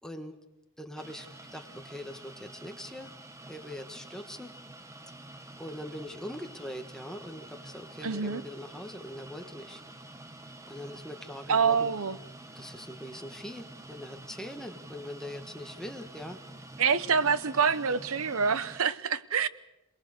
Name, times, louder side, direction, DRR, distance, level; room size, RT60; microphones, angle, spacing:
voice 1, 0.0-0.4 0.8-3.1 3.5-4.5 5.6-9.8 10.7-12.0 12.5-16.4, left 1 dB, 5° left, 5 dB, 1.4 m, -42 dB
sound 1, 1.0-18.8, right 1 dB, 15° right, 0.9 m, -48 dB
voice 2, 8.0-8.4 11.5-12.2 16.8-19.5, right 6 dB, 75° right, 15 dB, 0.9 m, -26 dB
27.5 x 20.0 x 6.6 m, 0.96 s
head